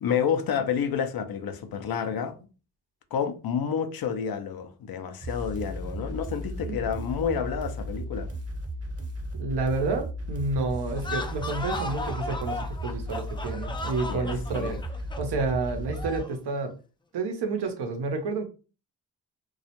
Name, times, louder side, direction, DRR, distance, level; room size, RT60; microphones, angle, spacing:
voice 1, 0.0-2.3 3.1-8.3 14.1-14.8, left 7 dB, 60° left, 0.6 m, -29 dB
sound 1, 5.2-16.2, equal, 35° right, 0.9 m, -35 dB
voice 2, 9.3-14.8 15.2-16.7 17.1-18.5, right 3 dB, 75° right, 0.7 m, -30 dB
sound 2, 10.9-16.4, left 2 dB, 15° left, 0.4 m, -36 dB
2.3 x 2.0 x 2.8 m
supercardioid pair, 45°, 41 cm